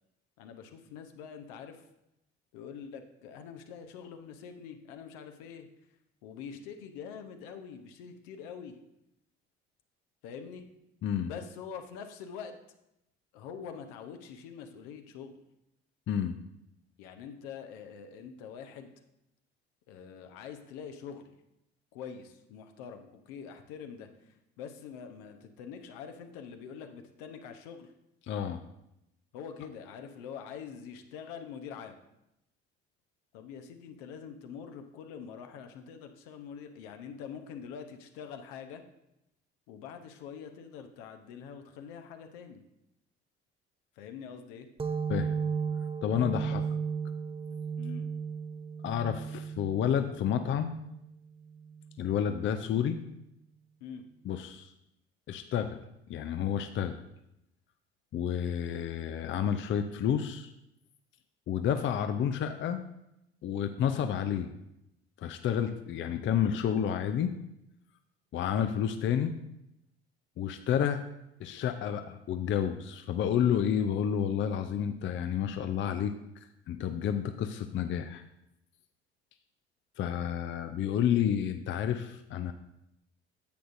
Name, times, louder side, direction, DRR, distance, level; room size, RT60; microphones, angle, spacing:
voice 1, 0.4-1.8 2.5-5.7 6.2-8.7 10.2-10.6 11.2-12.6 13.3-15.3 17.0-18.9 19.9-21.3 21.9-27.9 29.3-32.0 33.3-38.8 39.7-42.6 44.0-44.7 46.5-46.6 47.8-48.1 53.8-54.0, left 7 dB, 65° left, 7 dB, 0.9 m, -45 dB
voice 2, 16.1-16.4 28.3-28.6 45.1-45.3 46.0-46.6 48.8-50.8 52.0-53.0 54.2-54.7 55.3-55.8 56.1-57.0 58.1-60.5 61.5-62.8 63.4-64.5 65.2-67.3 68.3-69.3 70.4-71.0 71.4-76.1 76.7-78.2 80.0-82.5, left 9 dB, 40° left, 8 dB, 0.6 m, -30 dB
sound 1, 44.8-52.1, right 6 dB, 15° right, 0.6 m, -35 dB
10.0 x 7.9 x 2.6 m, 0.83 s
figure-of-eight pair, 55°, 32 cm